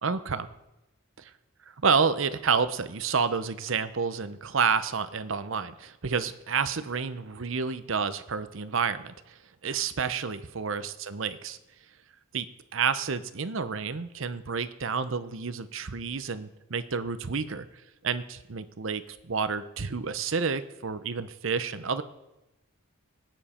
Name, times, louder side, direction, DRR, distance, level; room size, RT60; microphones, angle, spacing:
voice 1, 0.0-0.5 1.8-11.6 12.3-12.5 12.7-17.7 18.0-22.0, right 5 dB, 65° right, 12 dB, 0.7 m, -29 dB
19.0 x 9.3 x 4.4 m, 0.97 s
head